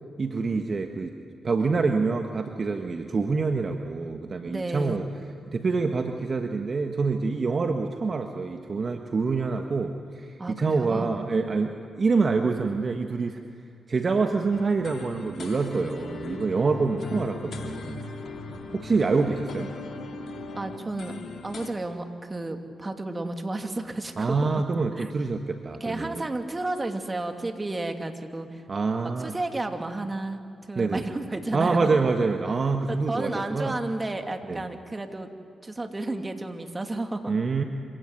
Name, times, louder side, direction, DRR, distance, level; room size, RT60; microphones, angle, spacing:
voice 1, 0.2-1.1 1.4-5.1 5.5-13.4 13.9-18.1 18.7-19.7 24.2-26.3 28.7-29.3 30.7-31.0 31.5-33.8 34.5-34.6 37.3-37.6, right 4 dB, 50° right, 5 dB, 1.4 m, -26 dB
voice 2, 4.5-5.1 10.4-11.2 17.5-17.7 20.6-21.1 21.4-24.4 25.0-25.1 25.8-28.6 29.2-30.4 30.7-31.9 32.9-35.3 35.6-37.3, right 2 dB, 30° right, 5 dB, 2.7 m, -32 dB
sound 1, 14.5-21.7, left 3 dB, 65° left, 2.5 m, -38 dB
26.0 x 17.0 x 9.5 m, 2.4 s
hypercardioid pair, 45°, 0 cm